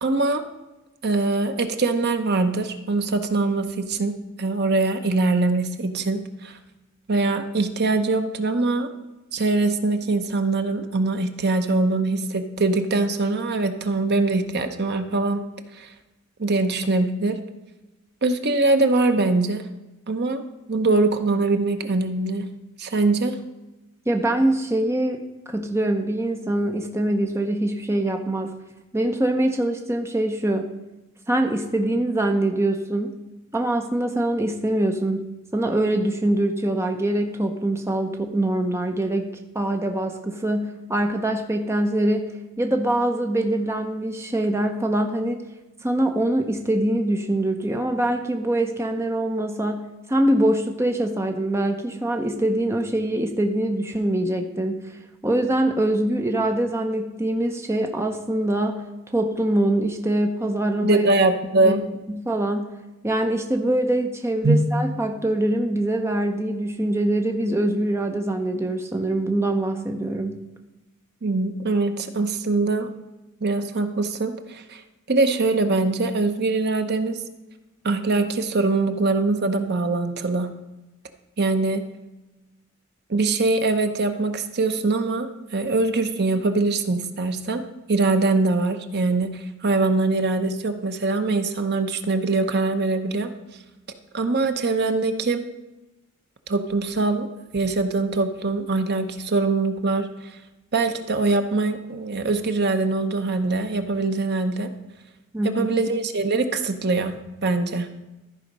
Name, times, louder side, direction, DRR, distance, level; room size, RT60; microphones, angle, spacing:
voice 1, 0.0-0.4 1.0-6.6 7.1-8.9 9.3-15.4 15.7-15.9 16.4-17.4 18.2-19.7 20.1-20.4 20.7-22.5 22.8-23.4 60.8-61.8 64.4-64.6 71.2-72.9 73.4-74.8 75.1-77.2 77.8-80.5 81.4-81.8 83.1-87.6 87.9-93.3 94.1-95.4 96.5-97.3 97.5-100.1 100.7-104.7 105.4-107.9, right 3 dB, 50° right, 7 dB, 0.8 m, -23 dB
voice 2, 24.1-25.2 25.5-28.5 28.9-30.7 31.3-33.2 33.5-35.2 35.5-39.3 39.5-42.3 42.6-45.4 45.8-54.8 55.2-58.8 59.1-61.1 61.6-61.8 62.1-62.7 63.0-70.4 105.3-105.7, right 1 dB, 10° right, 4 dB, 0.6 m, -23 dB
13.5 x 4.9 x 5.4 m, 1.0 s
head